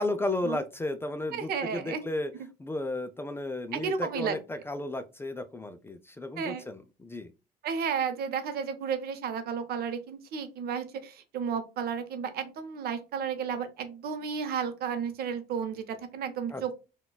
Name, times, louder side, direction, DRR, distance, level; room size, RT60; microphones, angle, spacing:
voice 1, 0.0-2.3 2.6-7.3 16.5-16.7, left 2 dB, 15° left, 9 dB, 0.3 m, -34 dB
voice 2, 1.3-2.1 2.3-2.5 3.7-4.4 6.4-6.6 7.6-16.7, right 6 dB, 65° right, 9 dB, 0.7 m, -33 dB
3.9 x 2.3 x 2.2 m, 0.29 s
cardioid pair, 110°, 17 cm